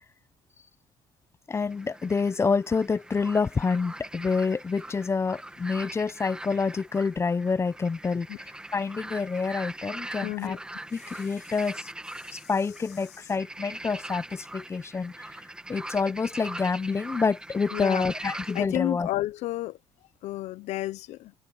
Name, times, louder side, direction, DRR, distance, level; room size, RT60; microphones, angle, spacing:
voice 1, 1.5-8.3 8.7-10.6 10.9-11.9 12.3-15.3 15.7-19.1, left 4 dB, 20° left, 0.7 m, -27 dB
sound 1, 1.5-18.7, right 1 dB, 5° right, 1.5 m, -41 dB
voice 2, 10.2-10.6 17.7-18.1 18.5-19.8 20.2-21.3, left 15 dB, 70° left, 0.8 m, -31 dB
cardioid pair, 105°, 12 cm